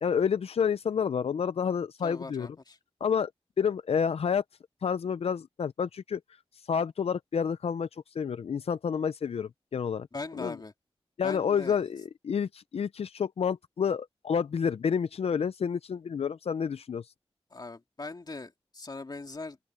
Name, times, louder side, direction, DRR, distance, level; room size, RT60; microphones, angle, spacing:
voice 1, 0.0-2.5 3.0-3.3 3.6-4.4 4.8-6.2 6.7-10.1 10.4-10.6 11.2-17.1, left 7 dB, 90° left, 0.4 m, -29 dB
voice 2, 2.0-2.8 10.1-10.7 11.2-11.8 17.5-19.6, left 3 dB, 45° left, 2.5 m, -40 dB
open air
wide cardioid pair, 100°, 10 cm